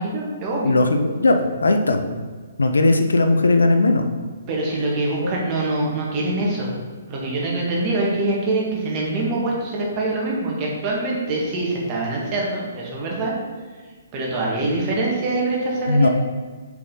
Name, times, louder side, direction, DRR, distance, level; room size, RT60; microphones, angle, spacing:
voice 1, 0.0-0.7 4.5-6.7 7.1-13.3 14.1-16.1, right 2 dB, 30° right, -3 dB, 1.9 m, -24 dB
voice 2, 0.6-2.1 2.6-4.1 5.2-5.3 15.9-16.1, left 2 dB, 75° left, 6 dB, 0.6 m, -18 dB
6.5 x 4.9 x 3.9 m, 1.5 s
figure-of-eight pair, 130°, 0 cm